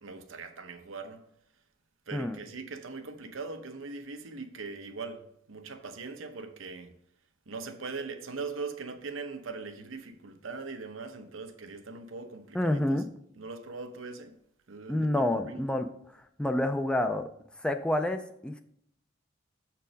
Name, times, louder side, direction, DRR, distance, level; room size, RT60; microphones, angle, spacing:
voice 1, 0.0-1.2 2.1-7.0 7.5-13.0 13.3-14.4 14.7-15.7, right 4 dB, 90° right, 0.9 m, -41 dB
voice 2, 12.6-13.0 14.9-15.9 16.4-17.2 17.6-18.6, left 1 dB, 5° left, 0.3 m, -28 dB
7.0 x 4.5 x 5.1 m
head